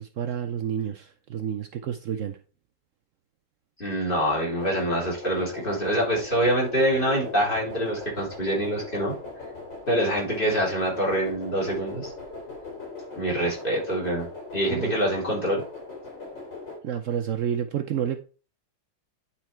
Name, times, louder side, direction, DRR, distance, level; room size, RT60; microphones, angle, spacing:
voice 1, 0.0-2.4 14.7-15.0 16.8-18.2, right 9 dB, 90° right, 0.6 m, -29 dB
voice 2, 3.8-9.1 9.9-12.1 13.2-15.6, right 1 dB, 25° left, 3.4 m, -25 dB
sound 1, 4.6-16.8, left 3 dB, 70° left, 3.6 m, -40 dB
9.5 x 4.4 x 4.5 m
omnidirectional pair, 2.0 m